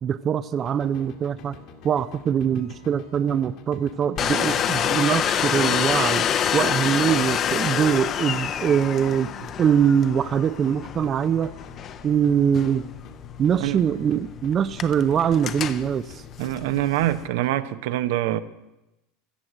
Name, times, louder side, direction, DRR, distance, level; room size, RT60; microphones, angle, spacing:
voice 1, 0.0-1.5 1.8-6.3 6.5-9.3 9.6-11.5 12.0-12.9 13.4-16.2, right 8 dB, 30° right, 0.4 m, -23 dB
sound 1, 0.6-13.5 13.8-17.6, left 5 dB, 55° left, 1.8 m, -47 dB
Domestic sounds home sounds, 4.2-17.3, left 9 dB, 35° left, 0.7 m, -28 dB
voice 2, 16.4-18.4, right 14 dB, 75° right, 0.8 m, -24 dB
14.5 x 7.8 x 7.4 m
supercardioid pair, 130°, 0 cm